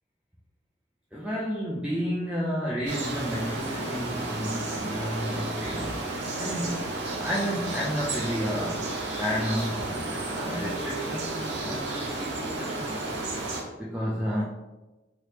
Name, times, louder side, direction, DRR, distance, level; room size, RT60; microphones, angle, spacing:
voice 1, 1.1-6.9 7.2-13.2 13.8-14.4, equal, 5° right, -7 dB, 0.4 m, -32 dB
sound 1, 2.9-13.6, right 2 dB, 60° right, 0.7 m, -32 dB
3.1 x 3.0 x 2.8 m, 1.1 s
head